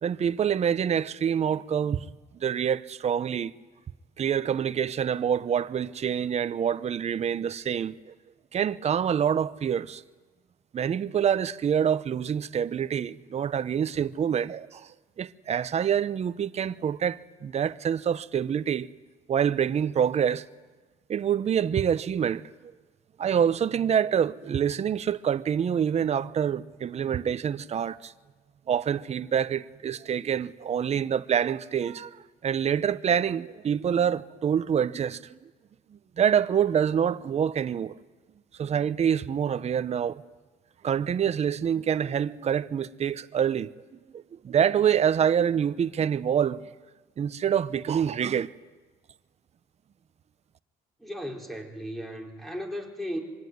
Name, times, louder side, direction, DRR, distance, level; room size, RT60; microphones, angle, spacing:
voice 1, 0.0-2.1 2.4-3.5 4.2-8.1 8.5-10.0 10.7-14.9 15.2-18.9 19.3-20.5 21.1-22.4 23.2-28.1 28.7-35.5 36.2-38.0 38.6-40.2 40.8-43.7 44.1-46.6 47.2-48.5, right 8 dB, 40° right, 0.9 m, -26 dB
voice 2, 51.0-53.2, equal, ahead, 5.2 m, -35 dB
25.5 x 23.5 x 9.6 m
cardioid pair, 110°, 17 cm